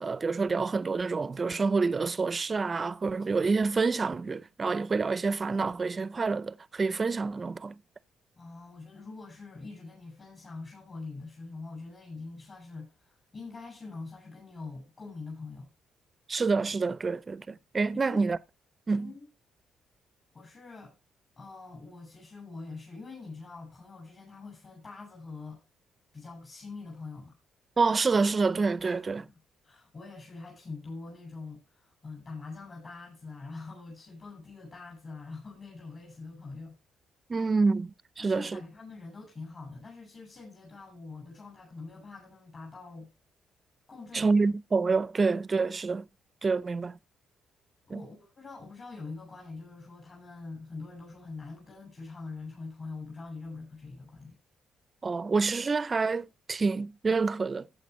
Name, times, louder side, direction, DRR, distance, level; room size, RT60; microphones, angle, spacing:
voice 1, 0.0-7.8 16.3-18.4 18.9-19.1 27.8-29.2 37.3-38.6 44.1-46.1 46.4-47.0 47.9-48.0 55.0-57.7, right 4 dB, 30° right, 0.5 m, -27 dB
voice 2, 8.4-15.7 17.9-18.2 19.0-19.3 20.3-20.9 21.4-25.6 26.1-27.3 28.8-29.4 29.6-36.8 38.2-43.1 43.9-44.3 47.9-54.4, left 3 dB, 40° left, 6.4 m, -44 dB
14.5 x 8.2 x 3.1 m
cardioid pair, 90°, 0 cm